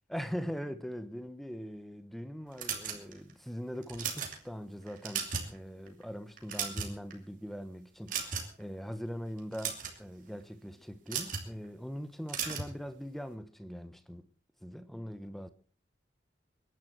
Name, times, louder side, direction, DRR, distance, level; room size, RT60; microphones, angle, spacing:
voice 1, 0.1-14.3 14.6-15.5, equal, ahead, 0.9 m, -41 dB
sound 1, 2.6-3.3 3.8-4.3 4.9-5.6 5.9-6.0 6.4-7.1 8.1-8.6 9.4-10.0 11.1-11.5 12.3-12.7, right 6 dB, 45° right, 2.7 m, -35 dB
22.5 x 11.0 x 4.6 m
head